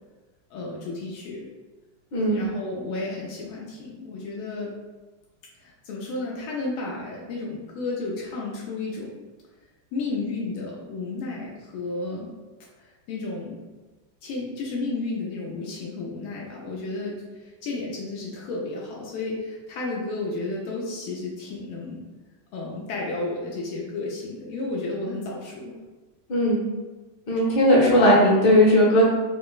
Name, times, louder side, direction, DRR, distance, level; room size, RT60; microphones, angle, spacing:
voice 1, 0.5-1.5 2.3-4.7 5.6-9.1 9.9-12.3 12.8-13.6 14.2-22.0 22.5-25.7, left 3 dB, 85° left, -3 dB, 1.4 m, -32 dB
voice 2, 26.3-26.6 27.3-29.0, left 1 dB, 60° left, -5 dB, 1.4 m, -17 dB
5.0 x 2.1 x 2.3 m, 1.2 s
omnidirectional pair, 2.2 m